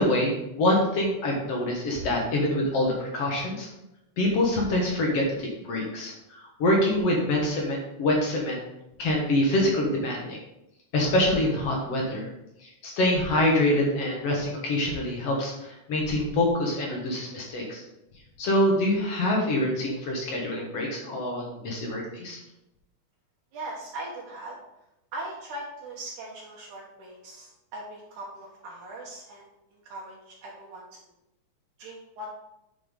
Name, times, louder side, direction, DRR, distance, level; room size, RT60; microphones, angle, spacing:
voice 1, 0.0-3.7 4.2-8.6 9.0-10.4 10.9-12.3 12.6-17.8 18.4-22.4, left 1 dB, 55° left, -1 dB, 2.2 m, -25 dB
voice 2, 23.5-24.6 25.1-29.4 29.7-30.8 31.8-32.3, right 1 dB, 75° right, -4 dB, 2.6 m, -40 dB
9.4 x 5.4 x 3.7 m, 0.88 s
omnidirectional pair, 3.6 m